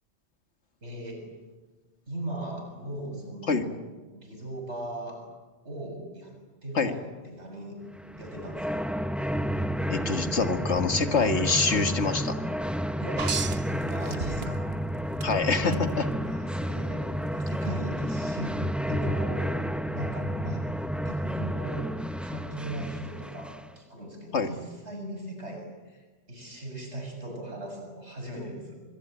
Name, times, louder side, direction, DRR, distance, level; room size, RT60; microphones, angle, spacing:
voice 1, 0.8-1.2 2.1-3.7 4.1-5.3 5.6-6.3 6.6-7.8 8.2-8.9 13.0-13.3 13.6-14.6 16.2-17.1 17.3-19.6 19.9-20.7 21.0-21.9 22.2-28.8, right 1 dB, 80° right, 3 dB, 7.3 m, -39 dB
sound 1, 8.0-23.7, equal, ahead, 0.7 m, -31 dB
voice 2, 9.9-12.4 15.2-16.1 24.3-24.5, left 4 dB, 85° left, 7 dB, 2.2 m, -25 dB
sound 2, 13.2-14.8 15.2-15.8 17.4-17.5, right 6 dB, 65° right, 1.3 m, -33 dB
26.5 x 23.0 x 9.0 m, 1.3 s
omnidirectional pair, 1.1 m